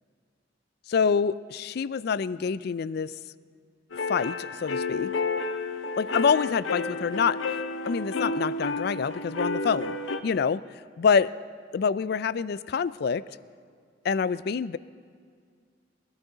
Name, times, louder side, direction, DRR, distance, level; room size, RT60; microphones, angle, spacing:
voice 1, 0.9-3.1 4.1-5.1 6.0-7.4 7.9-10.0 10.2-10.6 11.0-11.3 11.7-13.2 14.0-14.8, left 6 dB, 55° left, 17 dB, 0.3 m, -26 dB
sound 1, 3.9-10.2, left 3 dB, 90° left, 0.8 m, -31 dB
20.5 x 13.0 x 4.0 m, 2.1 s
head